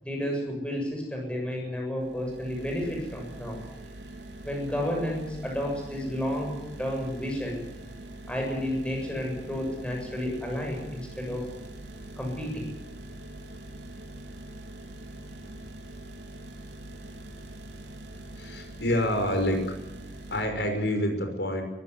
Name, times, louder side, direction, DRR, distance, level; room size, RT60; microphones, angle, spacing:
voice 1, 0.0-3.6 4.4-7.6 8.3-11.5 12.2-12.7, equal, 5° left, 0 dB, 7.4 m, -31 dB
sound 1, 2.0-20.4, right 1 dB, 85° right, 3.6 m, -43 dB
voice 2, 18.4-19.6 20.3-21.6, left 1 dB, 80° left, 5 dB, 5.9 m, -27 dB
22.5 x 15.5 x 9.6 m, 0.97 s
head